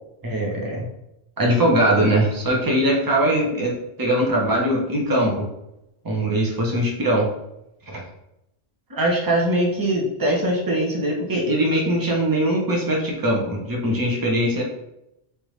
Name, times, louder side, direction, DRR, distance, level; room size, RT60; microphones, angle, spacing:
voice 1, 0.2-0.9 1.4-5.5 6.0-7.3 7.9-8.0 8.9-14.6, right 1 dB, 20° right, -1 dB, 0.9 m, -21 dB
4.8 x 3.5 x 3.2 m, 0.85 s
omnidirectional pair, 1.2 m